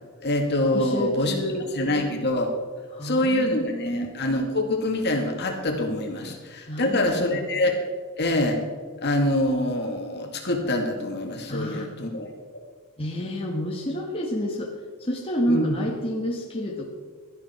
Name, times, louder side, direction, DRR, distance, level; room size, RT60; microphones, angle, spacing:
voice 1, 0.2-1.3 1.7-2.5 3.0-7.8 8.2-8.6 9.0-12.6 15.5-15.8, left 1 dB, 50° left, 2 dB, 2.3 m, -25 dB
voice 2, 0.7-1.7 2.9-4.1 6.3-6.4 6.7-7.5 11.5-11.9 13.0-14.7 15.0-16.9, equal, 25° left, -2 dB, 1.8 m, -29 dB
17.0 x 12.0 x 4.5 m, 1.5 s
head